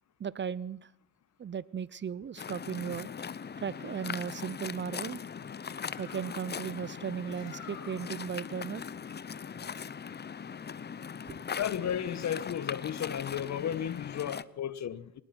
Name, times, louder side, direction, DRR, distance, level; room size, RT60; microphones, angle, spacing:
voice 1, 0.2-0.9 1.4-3.1 3.6-5.2 5.8-8.8 11.3-11.4, right 7 dB, 35° right, 0.7 m, -36 dB
Waves surf, 2.4-14.4, left 7 dB, 30° left, 0.9 m, -40 dB
Bird, 5.6-10.6, left 8 dB, 80° left, 5.7 m, -54 dB
voice 2, 11.6-15.2, left 9 dB, 50° left, 1.3 m, -34 dB
22.5 x 20.0 x 6.1 m
supercardioid pair, 80°, 34 cm